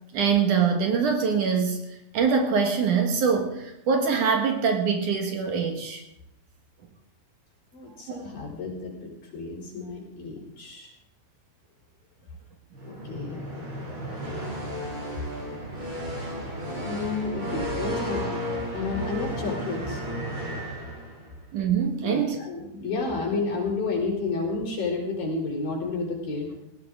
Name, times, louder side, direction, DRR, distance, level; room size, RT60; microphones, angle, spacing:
voice 1, 0.1-1.8 2.1-6.0 8.1-8.4 21.5-22.4, right 6 dB, 60° right, 4 dB, 2.9 m, -24 dB
voice 2, 7.7-10.9 12.8-13.4 16.7-18.2 18.7-20.0 22.0-26.5, left 3 dB, 70° left, -2 dB, 6.5 m, -31 dB
sound 1, 12.7-21.4, equal, 30° right, 5.5 m, -33 dB
19.0 x 16.5 x 3.8 m, 0.83 s
omnidirectional pair, 4.3 m